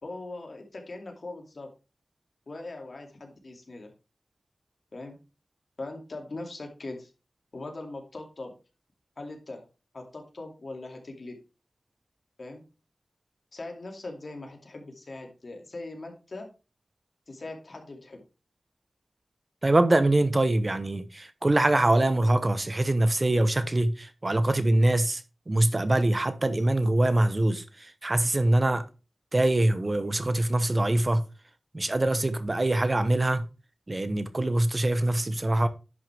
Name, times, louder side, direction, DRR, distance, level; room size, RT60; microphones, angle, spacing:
voice 1, 0.0-1.7 2.5-3.9 4.9-5.2 5.8-7.1 7.5-8.6 9.2-9.7 9.9-11.4 12.4-12.6 13.5-16.5 17.3-18.2, left 2 dB, 60° left, 2.5 m, -40 dB
voice 2, 19.6-25.2 25.5-28.8 29.3-31.2 31.7-33.4 33.9-35.7, right 1 dB, 30° right, 0.9 m, -24 dB
10.5 x 6.2 x 3.4 m
wide cardioid pair, 90°, 0 cm